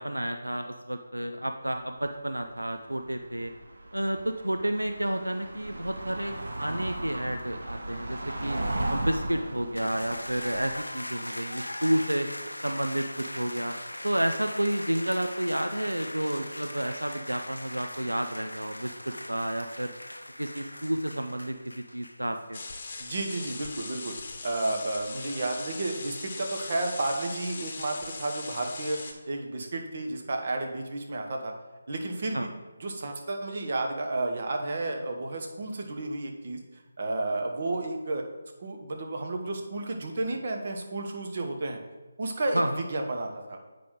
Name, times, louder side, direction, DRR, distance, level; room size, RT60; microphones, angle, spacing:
voice 1, 0.0-3.5 3.9-8.6 8.9-12.3 12.6-13.8 14.0-19.9 20.4-22.6 32.3-32.5 42.5-42.8, right 1 dB, 90° right, 6 dB, 0.5 m, -30 dB
sound 1, 1.8-2.1 2.3-10.8, right 1 dB, 65° right, 0.9 m, -36 dB
sound 2, 9.8-22.4, left 1 dB, 90° left, 0.5 m, -40 dB
sound 3, 22.5-29.1, left 3 dB, 40° left, 0.9 m, -40 dB
voice 2, 23.0-24.2 24.4-31.5 31.9-32.5 32.8-36.6 37.0-38.2 38.6-41.8 42.2-42.6 42.9-43.6, right 2 dB, 45° right, 3 dB, 1.1 m, -32 dB
8.2 x 5.0 x 3.8 m, 1.2 s
figure-of-eight pair, 155°, 0 cm